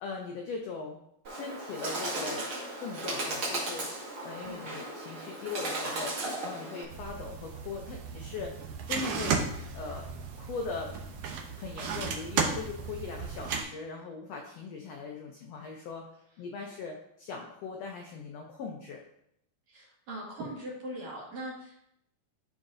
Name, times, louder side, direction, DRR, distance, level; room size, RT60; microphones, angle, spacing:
voice 1, 0.0-1.0 1.3-2.5 2.8-3.9 4.2-6.2 6.4-8.5 8.9-9.4 9.7-10.1 10.3-10.9 11.6-16.1 16.4-19.0, left 4 dB, 80° left, 1 dB, 1.4 m, -40 dB
Bird, 1.2-6.8, right 1 dB, 45° right, 2.5 m, -36 dB
sound 1, 6.9-13.6, right 5 dB, 75° right, 1.5 m, -34 dB
voice 2, 19.7-21.9, right 1 dB, 60° right, -4 dB, 3.1 m, -41 dB
11.5 x 4.9 x 2.6 m, 0.76 s
omnidirectional pair, 3.8 m